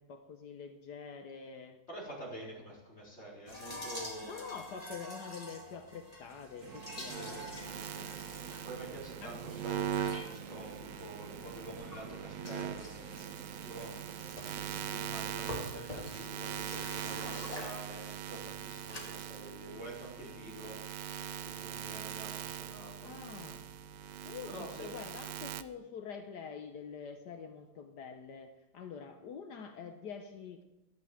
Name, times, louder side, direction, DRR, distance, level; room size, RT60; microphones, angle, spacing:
voice 1, 0.0-1.8 2.5-2.6 4.2-8.1 9.2-9.4 23.0-23.7 24.2-30.6, left 6 dB, 75° left, 6 dB, 1.6 m, -46 dB
voice 2, 1.9-4.5 6.9-7.5 8.6-14.0 14.5-23.1 24.5-24.9, right 1 dB, 40° left, -4 dB, 4.6 m, -48 dB
sound 1, 3.5-19.0, left 1 dB, 20° left, 2.7 m, -48 dB
sound 2, 6.6-15.7, right 6 dB, 55° right, 1.3 m, -50 dB
sound 3, 7.1-25.6, right 9 dB, 85° right, 1.3 m, -41 dB
14.0 x 11.0 x 7.4 m, 0.95 s
omnidirectional pair, 1.8 m